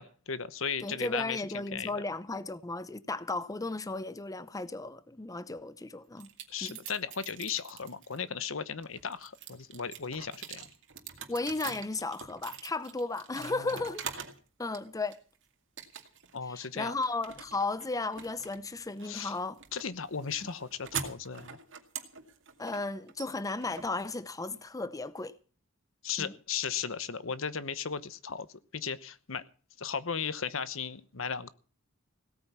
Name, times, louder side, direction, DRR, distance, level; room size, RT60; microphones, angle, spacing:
voice 1, 0.0-2.0 6.5-10.7 13.4-13.8 16.3-16.9 19.0-19.4 19.7-21.6 26.0-28.5 28.7-29.4 29.8-31.5, left 6 dB, 70° left, 1.0 m, -36 dB
voice 2, 0.8-6.3 6.6-6.8 11.3-14.1 14.6-15.2 16.5-19.6 22.6-25.3 26.2-26.3, left 3 dB, 15° left, 0.6 m, -35 dB
sound 1, 6.2-8.2 8.7-14.4 14.7-15.4 15.8-16.4 16.6-24.6, right 7 dB, 65° right, 2.3 m, -44 dB
17.0 x 9.0 x 7.2 m
head